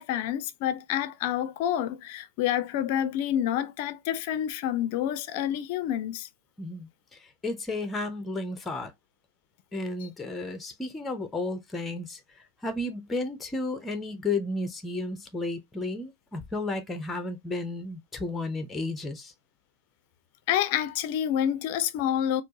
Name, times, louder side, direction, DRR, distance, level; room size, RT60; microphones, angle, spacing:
voice 1, 0.0-6.3 20.5-22.4, left 10 dB, 50° left, 0.5 m, -28 dB
voice 2, 6.6-8.9 9.7-12.2 12.6-19.3, left 2 dB, 10° left, 0.7 m, -33 dB
4.4 x 2.0 x 2.8 m
figure-of-eight pair, 100°, 0 cm